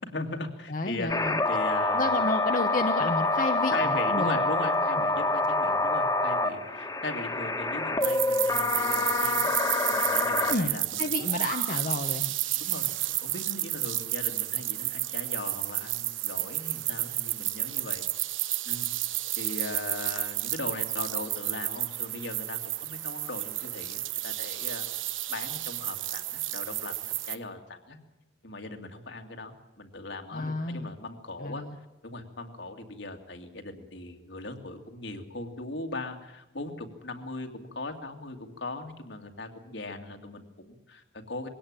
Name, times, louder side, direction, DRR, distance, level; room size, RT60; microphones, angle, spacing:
voice 1, 0.0-2.1 3.7-9.5 9.9-11.1 12.6-18.1 18.6-18.9 19.4-24.9 25.3-28.0 28.4-31.6 32.0-41.5, left 2 dB, 70° left, 4 dB, 2.4 m, -39 dB
voice 2, 0.7-1.4 1.9-4.4 4.9-5.1 10.5-12.3 30.3-30.9 31.4-31.8, left 2 dB, 45° left, 5 dB, 0.9 m, -31 dB
sound 1, 1.1-10.5, left 2 dB, 20° left, 1.6 m, -26 dB
sound 2, 8.0-27.4, right 15 dB, 90° right, 1.0 m, -31 dB
sound 3, 11.0-11.7, right 4 dB, 35° right, 2.7 m, -37 dB
22.0 x 17.0 x 8.9 m, 0.94 s
head